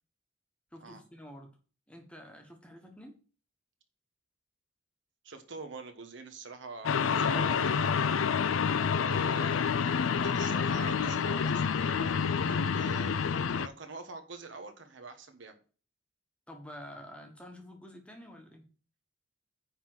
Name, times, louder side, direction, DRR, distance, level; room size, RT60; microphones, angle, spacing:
voice 1, 0.7-1.5 1.9-3.2 8.6-8.9 16.5-18.7, equal, 5° left, 3 dB, 1.3 m, -48 dB
voice 2, 5.2-8.1 9.0-15.6, right 4 dB, 65° right, 7 dB, 1.3 m, -45 dB
sound 1, 6.8-13.7, left 6 dB, 85° left, 0.5 m, -28 dB
9.6 x 3.8 x 6.1 m, 0.38 s
head